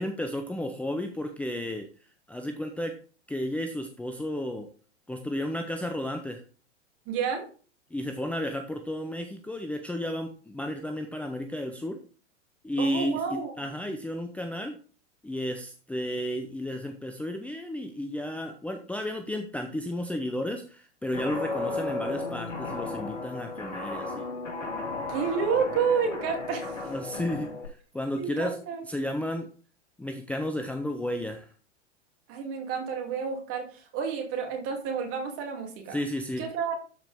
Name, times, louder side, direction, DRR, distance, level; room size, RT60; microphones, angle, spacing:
voice 1, 0.0-1.9 2.3-2.9 3.3-4.7 5.1-6.4 7.9-12.0 12.6-14.7 15.2-24.3 26.8-28.6 28.9-29.5 30.0-31.5 35.9-36.4, left 1 dB, 5° left, 4 dB, 0.7 m, -33 dB
voice 2, 7.1-7.5 12.8-13.5 25.1-26.8 28.2-28.8 32.3-36.0 36.4-36.7, right 6 dB, 40° right, 3 dB, 2.8 m, -30 dB
Guitar, 21.1-27.7, left 3 dB, 80° left, 2.7 m, -34 dB
12.5 x 5.0 x 3.6 m, 0.40 s
figure-of-eight pair, 100°, 36 cm